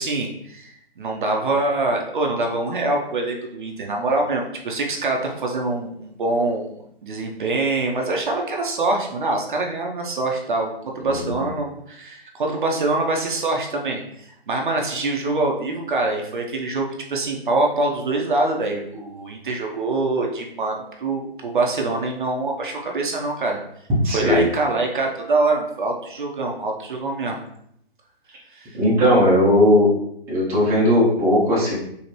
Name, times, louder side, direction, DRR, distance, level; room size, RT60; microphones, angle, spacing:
voice 1, 0.0-6.7 7.0-23.6 24.1-27.4 28.5-28.8, right 2 dB, 50° right, 1 dB, 0.7 m, -24 dB
voice 2, 11.1-11.4 24.0-24.4 28.7-29.9 30.3-31.7, left 1 dB, 10° right, -8 dB, 0.7 m, -17 dB
4.0 x 2.8 x 3.0 m, 0.72 s
figure-of-eight pair, 140°, 31 cm